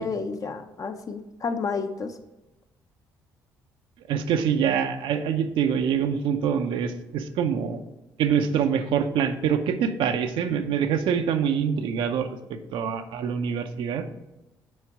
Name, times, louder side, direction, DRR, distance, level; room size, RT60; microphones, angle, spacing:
voice 1, 0.0-2.2, left 4 dB, 40° left, 7 dB, 0.7 m, -31 dB
voice 2, 4.1-7.8 8.2-14.0, right 7 dB, 75° right, 7 dB, 0.6 m, -25 dB
6.4 x 4.4 x 4.8 m, 0.99 s
supercardioid pair, 70°, 9 cm